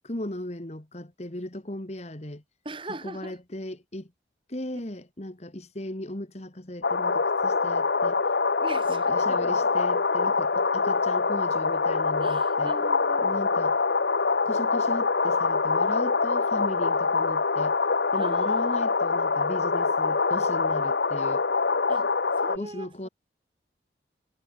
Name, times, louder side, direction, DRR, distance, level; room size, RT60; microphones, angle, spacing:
voice 1, 0.0-2.4 3.0-4.1 4.5-8.2 8.9-12.7 13.2-13.8 14.5-17.8 18.1-21.4 22.5-23.1, left 1 dB, 35° left, 1.7 m, -37 dB
voice 2, 2.6-3.4 8.6-9.6 10.2-10.3 12.2-13.3 18.2-18.9 21.9-23.1, right 2 dB, 30° right, 2.3 m, -41 dB
sound 1, 6.8-22.6, left 4 dB, 65° left, 0.9 m, -24 dB
head